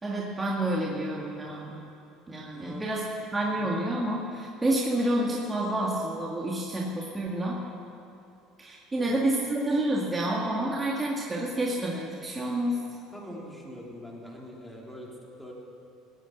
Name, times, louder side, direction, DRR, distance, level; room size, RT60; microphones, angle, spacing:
voice 1, 0.0-1.8 2.3-3.0 3.3-7.6 8.6-12.8, right 1 dB, 20° right, -4 dB, 2.0 m, -29 dB
voice 2, 2.5-2.9 3.5-3.8 9.0-9.1 13.1-15.5, equal, ahead, -3 dB, 3.5 m, -43 dB
16.5 x 10.0 x 8.1 m, 2.7 s
supercardioid pair, 95°, 0 cm